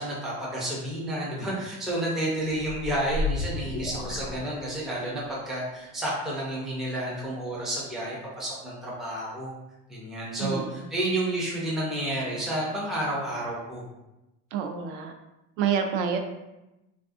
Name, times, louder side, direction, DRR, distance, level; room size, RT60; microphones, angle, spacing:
voice 1, 0.0-9.6 9.9-13.9, right 1 dB, ahead, -6 dB, 0.3 m, -30 dB
sound 1, 2.5-5.2, left 3 dB, 90° left, 0.7 m, -32 dB
voice 2, 14.5-15.1 15.6-16.2, right 7 dB, 70° right, 5 dB, 0.5 m, -27 dB
3.4 x 2.4 x 2.4 m, 0.95 s
cardioid pair, 165°, 34 cm